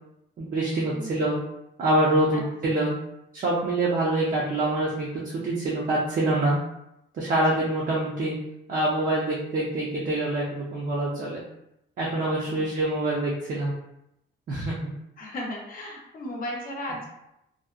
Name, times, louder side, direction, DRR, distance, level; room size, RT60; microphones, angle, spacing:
voice 1, 0.4-1.4 1.8-2.9 3.3-6.6 7.1-8.4 8.7-11.4 12.0-13.7 14.5-14.7, right 1 dB, 45° right, -5 dB, 0.5 m, -25 dB
voice 2, 15.2-17.0, left 1 dB, 50° left, -1 dB, 0.7 m, -35 dB
2.7 x 2.0 x 2.3 m, 0.82 s
cardioid pair, 145°, 19 cm